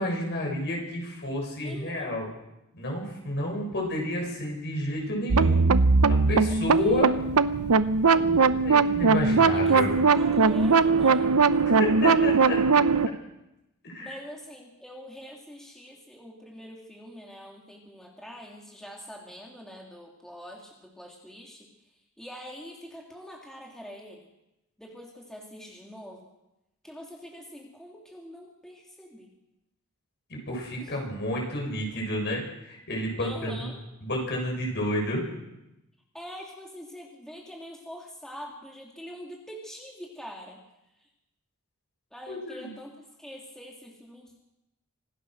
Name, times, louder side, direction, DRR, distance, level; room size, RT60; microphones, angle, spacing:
voice 1, 0.0-2.3 2.7-5.7 6.1-7.1 8.1-9.9 11.7-12.6 13.8-14.1 30.3-33.7 34.0-35.2 42.3-42.7, left 1 dB, 50° left, 0 dB, 7.5 m, -30 dB
voice 2, 1.6-2.2 6.5-7.0 9.4-9.8 10.1-11.3 14.0-21.7 22.2-24.3 24.8-26.3 26.8-29.3 30.8-31.0 33.2-33.8 36.1-40.6 41.0-41.1 42.1-44.4, equal, ahead, -1 dB, 2.8 m, -44 dB
sound 1, 5.3-13.1, right 4 dB, 85° right, 0.8 m, -20 dB
26.0 x 18.0 x 6.5 m, 0.92 s
head